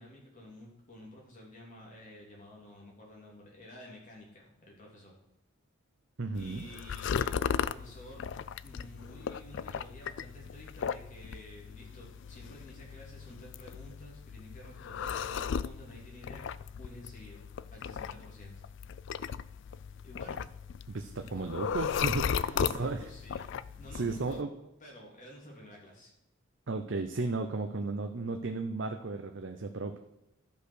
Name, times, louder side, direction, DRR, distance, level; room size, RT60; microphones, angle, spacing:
voice 1, 0.0-5.1 6.3-8.3 8.6-16.4 16.8-17.4 17.7-18.5 20.0-20.5 21.3-21.9 22.4-24.4 24.8-26.1, left 1 dB, 35° left, -3 dB, 3.1 m, -51 dB
voice 2, 6.2-6.6 20.9-23.0 23.9-24.5 26.7-30.0, right 3 dB, 55° right, 5 dB, 0.7 m, -34 dB
sound 1, 6.3-24.4, left 7 dB, 55° left, 0.3 m, -37 dB
12.0 x 5.5 x 6.4 m, 0.87 s
head